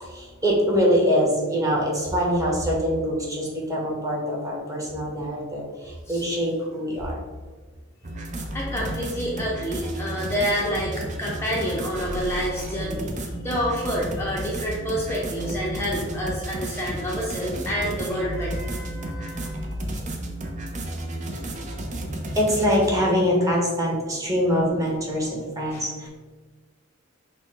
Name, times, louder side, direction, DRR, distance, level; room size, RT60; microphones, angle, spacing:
voice 1, 0.0-7.1 22.3-26.1, equal, 15° right, -3 dB, 1.1 m, -24 dB
sound 1, 8.0-22.9, right 1 dB, 35° right, 0.6 m, -32 dB
voice 2, 8.5-13.1 13.4-19.6 25.7-25.9, equal, 15° left, -5 dB, 0.6 m, -28 dB
6.0 x 2.2 x 3.8 m, 1.4 s
head